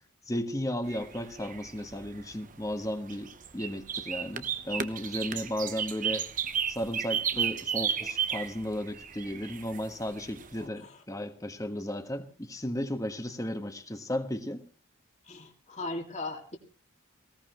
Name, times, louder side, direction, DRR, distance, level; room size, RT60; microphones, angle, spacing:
voice 1, 0.3-6.2 6.7-14.6, equal, 15° left, 7 dB, 1.4 m, -34 dB
sound 1, 0.9-10.6, right 8 dB, 40° right, 0.9 m, -34 dB
voice 2, 10.6-11.0 15.2-16.6, left 2 dB, 35° left, 2 dB, 2.3 m, -38 dB
19.0 x 17.5 x 3.1 m, 0.37 s
head